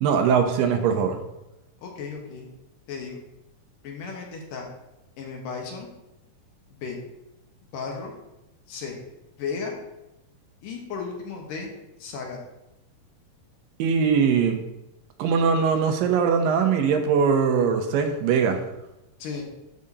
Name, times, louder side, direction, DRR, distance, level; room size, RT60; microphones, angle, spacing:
voice 1, 0.0-1.2 13.8-14.6 15.2-18.6, right 6 dB, 90° right, 5 dB, 2.6 m, -21 dB
voice 2, 1.8-2.5 2.9-3.2 3.8-4.7 5.2-5.9 6.7-7.0 7.7-8.1 8.7-9.0 9.4-9.7 10.6-11.7 12.0-12.4 19.2-19.4, left 5 dB, 75° left, 0 dB, 2.8 m, -34 dB
12.5 x 5.1 x 2.8 m, 0.92 s
omnidirectional pair, 3.9 m